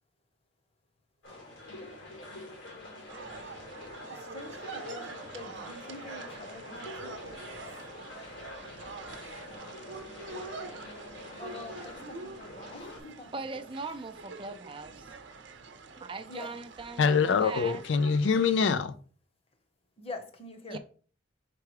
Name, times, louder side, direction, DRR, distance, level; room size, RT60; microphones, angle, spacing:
sound 1, 1.2-13.0, left 1 dB, 85° left, 3.2 m, -46 dB
sound 2, 3.1-18.6, right 3 dB, 65° right, 0.8 m, -46 dB
voice 1, 4.1-7.8 11.4-13.5 16.3-16.6 20.0-20.8, left 3 dB, 30° left, 1.0 m, -45 dB
voice 2, 13.3-15.1 16.0-17.8 20.7-20.8, right 3 dB, 25° right, 0.4 m, -40 dB
voice 3, 17.0-19.0, left 5 dB, 70° left, 0.4 m, -24 dB
4.7 x 4.7 x 4.8 m
head